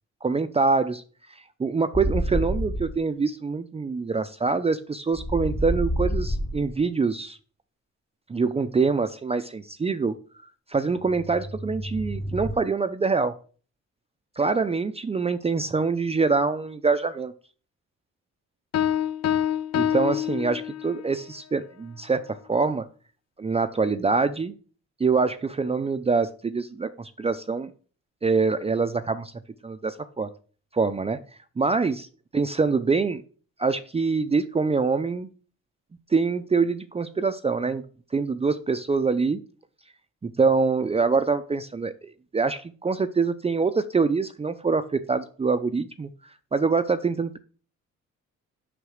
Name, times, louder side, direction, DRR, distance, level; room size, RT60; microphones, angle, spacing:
voice 1, 0.2-1.0 1.3-7.4 8.3-10.2 10.7-13.4 14.4-17.3 19.7-22.9 23.4-24.5 25.0-27.7 28.2-30.3 30.7-31.2 31.6-32.1 32.3-33.2 33.6-35.3 36.1-37.8 38.1-39.4 40.2-47.4, right 4 dB, 20° right, 10 dB, 0.6 m, -25 dB
sound 1, 1.9-2.9 5.1-6.8 10.9-12.5, equal, 10° left, 0.9 m, -29 dB
sound 2, 18.7-21.1, left 10 dB, 60° left, 0.8 m, -26 dB
6.7 x 5.9 x 6.5 m, 0.40 s
cardioid pair, 105°, 29 cm